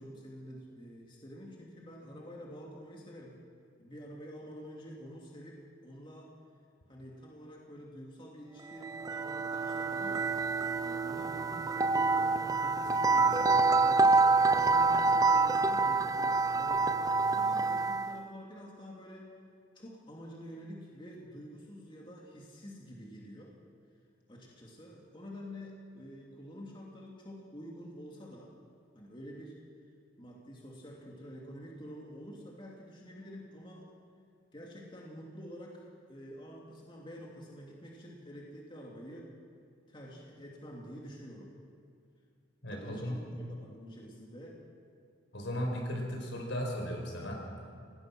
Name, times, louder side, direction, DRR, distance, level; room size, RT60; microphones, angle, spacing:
voice 1, 0.0-3.4 3.8-6.3 6.9-10.3 10.8-14.1 14.5-16.9 17.3-19.3 19.7-23.5 24.3-28.5 28.9-29.6 30.2-33.8 34.5-39.3 39.9-41.5 42.7-44.6, equal, 25° left, -2 dB, 2.6 m, -48 dB
sound 1, 8.7-18.2, right 3 dB, 20° right, 0.5 m, -27 dB
voice 2, 42.6-43.2 45.3-47.4, equal, 75° left, 1 dB, 5.2 m, -36 dB
26.5 x 18.0 x 6.2 m, 2.3 s
head